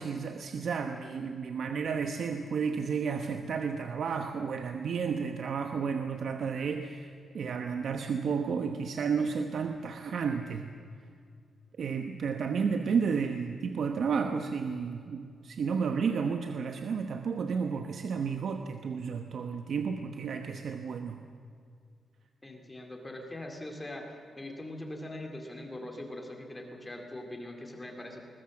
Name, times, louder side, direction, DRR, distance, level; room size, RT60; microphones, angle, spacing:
voice 1, 0.0-10.7 11.8-21.2, right 6 dB, 60° right, 6 dB, 1.0 m, -32 dB
voice 2, 22.4-28.2, left 1 dB, 15° left, 3 dB, 2.6 m, -42 dB
21.0 x 20.5 x 7.3 m, 2.2 s
wide cardioid pair, 150°, 0 cm